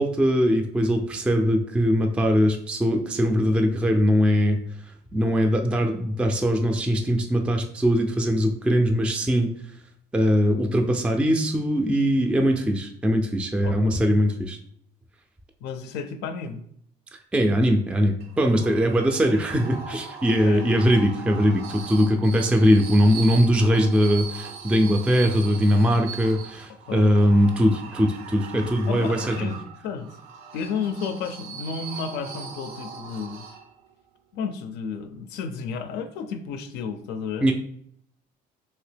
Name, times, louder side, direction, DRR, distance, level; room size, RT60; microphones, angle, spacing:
voice 1, 0.0-9.5 10.1-14.6 17.1-29.5 37.4-37.5, equal, 5° right, 4 dB, 0.3 m, -21 dB
voice 2, 13.6-14.1 15.6-16.6 18.6-18.7 20.4-20.8 26.7-27.4 28.9-30.1 30.5-33.4 34.3-37.5, left 6 dB, 85° left, 8 dB, 0.4 m, -32 dB
sound 1, 18.2-33.9, right 6 dB, 75° right, 0.5 m, -40 dB
2.8 x 2.8 x 3.3 m, 0.67 s
cardioid pair, 110°, 17 cm